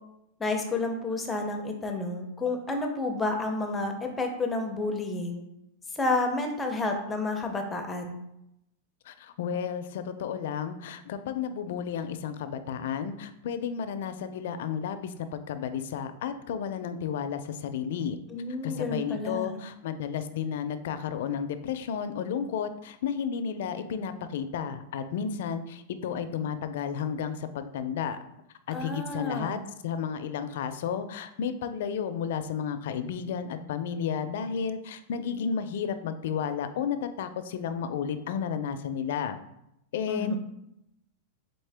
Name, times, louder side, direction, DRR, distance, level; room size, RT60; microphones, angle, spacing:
voice 1, 0.4-5.4 5.9-8.2 18.3-19.6 28.7-29.6 40.1-40.4, left 2 dB, 10° left, 4 dB, 0.5 m, -30 dB
voice 2, 9.1-18.2 18.6-28.2 28.7-29.6 29.8-39.4 39.9-40.4, left 7 dB, 65° left, 10 dB, 0.4 m, -32 dB
4.1 x 3.6 x 3.3 m, 0.82 s
supercardioid pair, 160°, 0 cm